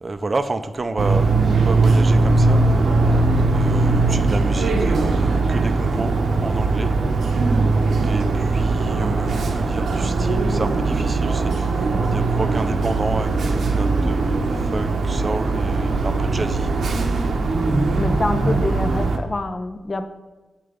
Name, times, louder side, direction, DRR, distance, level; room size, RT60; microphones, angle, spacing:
voice 1, 0.0-3.1 3.4-6.9 8.0-16.7, right 2 dB, 30° right, 10 dB, 0.5 m, -30 dB
sound 1, 1.0-19.2, right 3 dB, 70° right, 0.8 m, -20 dB
voice 2, 18.0-20.1, left 2 dB, 30° left, 8 dB, 0.5 m, -26 dB
8.0 x 4.5 x 5.0 m, 1.2 s
wide cardioid pair, 125°, 0 cm